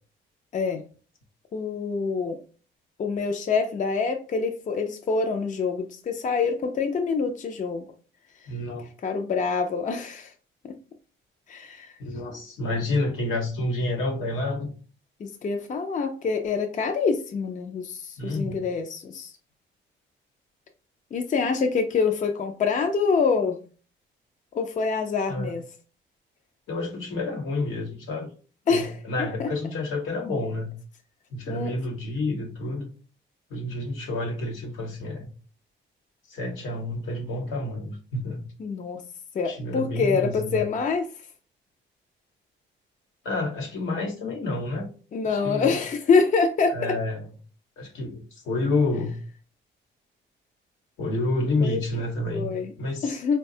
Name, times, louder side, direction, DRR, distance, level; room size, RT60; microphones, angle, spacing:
voice 1, 1.5-2.4 3.0-7.8 9.0-10.3 11.5-11.9 15.2-19.3 21.1-23.6 24.5-25.6 28.7-29.0 29.4-29.5 31.5-31.7 38.6-39.0 39.3-41.1 45.1-47.0 51.6-52.7 53.0-53.4, left 5 dB, 40° left, 0.5 m, -26 dB
voice 2, 8.5-8.9 12.0-14.7 18.2-18.6 25.3-25.5 26.7-28.3 28.7-30.7 31.3-32.9 33.5-35.3 36.3-38.4 39.4-40.6 43.2-44.9 45.3-45.8 46.7-47.3 47.8-49.2 51.0-53.2, left 2 dB, 80° left, 1.0 m, -29 dB
4.0 x 2.2 x 2.7 m
cardioid pair, 90°, 20 cm